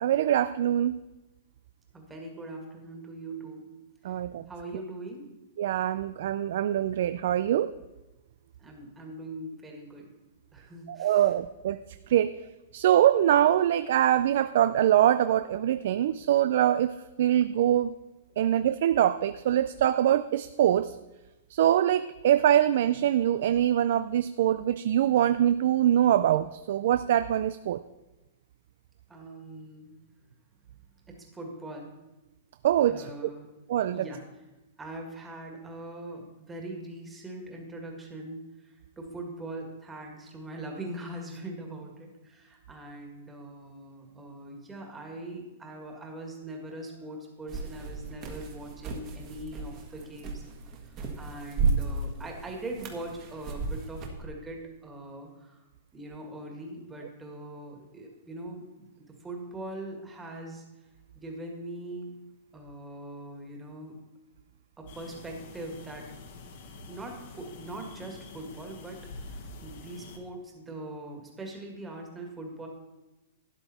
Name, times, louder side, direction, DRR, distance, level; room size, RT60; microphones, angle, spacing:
voice 1, 0.0-1.0 4.0-4.5 5.6-7.7 10.9-11.8 12.1-12.4 12.7-17.9 18.4-21.0 21.5-27.8 32.6-33.3 33.7-34.1, right 11 dB, 55° right, 13 dB, 0.4 m, -24 dB
voice 2, 1.9-3.6 4.1-4.2 4.5-5.2 8.6-10.1 10.5-11.3 29.1-29.9 31.1-31.9 32.9-33.5 33.9-34.2 34.8-50.4 50.9-55.6 55.9-60.6 61.2-62.2 62.5-63.9 64.8-66.1 66.9-72.7, right 1 dB, 10° right, 1 dB, 1.8 m, -41 dB
sound 1, 47.5-54.3, right 4 dB, 25° right, 1.5 m, -34 dB
sound 2, 64.9-70.2, left 3 dB, 50° left, 1.8 m, -46 dB
12.5 x 10.0 x 4.2 m, 1.0 s
supercardioid pair, 165°, 0 cm